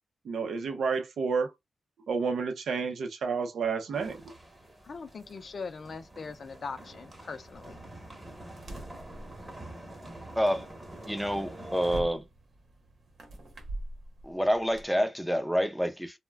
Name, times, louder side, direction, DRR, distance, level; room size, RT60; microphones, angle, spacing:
voice 1, 0.2-1.5 2.1-4.3, right 5 dB, 80° right, 0.5 m, -30 dB
sound 1, 3.9-12.0, right 1 dB, 20° right, 0.8 m, -46 dB
voice 2, 4.8-7.8, left 4 dB, 50° left, 0.4 m, -41 dB
sound 2, 7.5-14.9, right 1 dB, 60° right, 0.8 m, -45 dB
voice 3, 10.4-10.7 11.1-12.2 14.2-16.2, equal, ahead, 0.4 m, -28 dB
2.3 x 2.1 x 3.3 m
wide cardioid pair, 105°, 0 cm